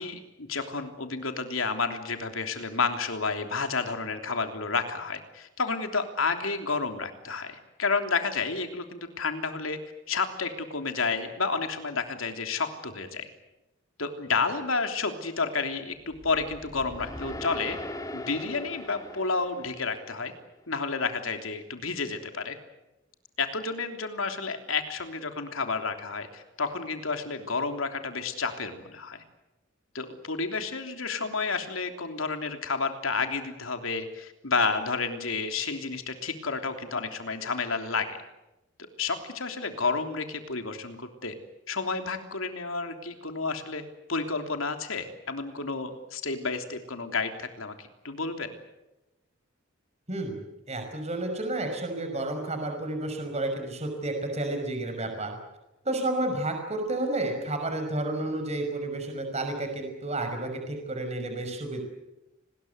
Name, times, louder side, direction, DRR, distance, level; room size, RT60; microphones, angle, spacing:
voice 1, 0.0-9.8 10.1-13.3 14.0-17.8 18.1-20.3 20.7-22.6 23.4-29.2 29.9-38.2 39.0-41.3 41.7-43.8 44.1-48.5, left 4 dB, 85° left, 6 dB, 3.3 m, -30 dB
sound 1, 16.1-20.4, left 1 dB, 15° left, 2.8 m, -40 dB
voice 2, 50.1-55.4 55.9-61.8, right 2 dB, 35° right, 5 dB, 5.4 m, -31 dB
30.0 x 21.0 x 8.1 m, 0.97 s
head